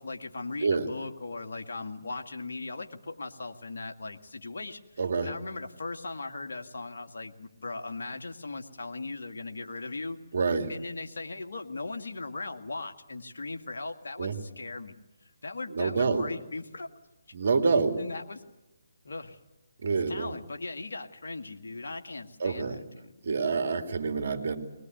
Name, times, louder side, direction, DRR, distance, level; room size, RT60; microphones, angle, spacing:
voice 1, 0.0-4.8 5.2-10.2 10.7-15.0 15.4-16.9 17.7-18.4 19.0-19.4 20.1-23.1, left 3 dB, 70° left, 5 dB, 2.1 m, -38 dB
voice 2, 5.0-5.3 10.3-10.7 14.2-14.4 15.7-16.3 17.3-18.1 19.8-20.3 22.4-22.8 23.2-24.6, right 4 dB, 60° right, 8 dB, 2.7 m, -27 dB
21.5 x 20.0 x 9.4 m, 0.95 s
figure-of-eight pair, 145°, 0 cm